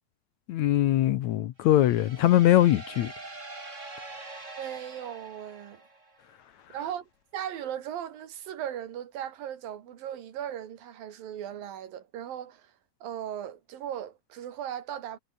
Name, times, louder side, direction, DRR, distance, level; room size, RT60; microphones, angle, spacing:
voice 1, 0.5-3.1, left 13 dB, 70° left, 1.9 m, -22 dB
sound 1, 1.6-6.3, right 2 dB, 20° right, 4.4 m, -44 dB
voice 2, 4.6-5.8 6.7-7.1 7.3-12.7 13.0-15.2, right 10 dB, 90° right, 3.8 m, -37 dB
omnidirectional pair, 4.0 m